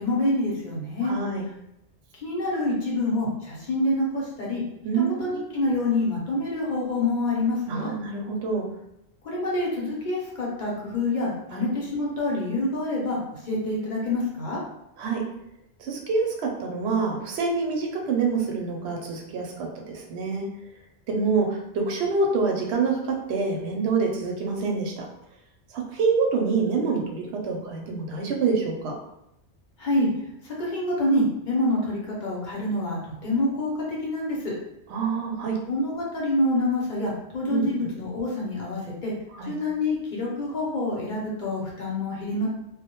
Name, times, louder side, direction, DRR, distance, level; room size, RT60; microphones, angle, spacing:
voice 1, 0.0-1.1 2.2-4.6 5.2-7.9 9.2-14.6 29.8-30.1 30.4-34.5 35.7-39.1 39.5-42.5, left 2 dB, 50° left, -4 dB, 0.8 m, -27 dB
voice 2, 1.0-1.4 4.8-5.6 7.7-8.6 11.5-11.7 15.0-15.2 15.8-20.5 21.1-25.1 25.7-28.9 34.9-35.6 37.5-37.7 39.4-39.5, right 4 dB, 75° right, 1 dB, 0.8 m, -26 dB
2.1 x 2.1 x 2.8 m, 0.85 s
omnidirectional pair, 1.1 m